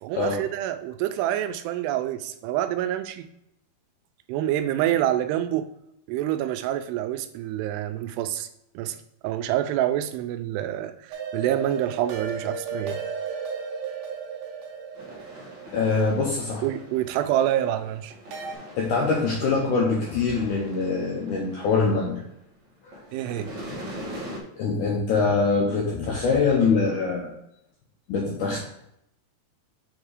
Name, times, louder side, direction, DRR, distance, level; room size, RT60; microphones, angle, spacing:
voice 1, 0.0-3.3 4.3-5.7 6.1-8.5 8.7-13.0 16.6-18.1 23.1-23.5, right 12 dB, 90° right, 10 dB, 2.7 m, -27 dB
sound 1, 11.1-17.2 18.3-18.6, right 5 dB, 70° right, 2.8 m, -35 dB
sound 2, 14.9-22.5 22.8-24.4, equal, 50° right, 1.4 m, -42 dB
voice 2, 15.7-16.6 18.8-22.2 22.8-23.0 24.6-27.3 28.1-28.6, left 4 dB, 80° left, -2 dB, 1.8 m, -24 dB
7.7 x 3.6 x 4.8 m, 0.79 s
omnidirectional pair, 4.7 m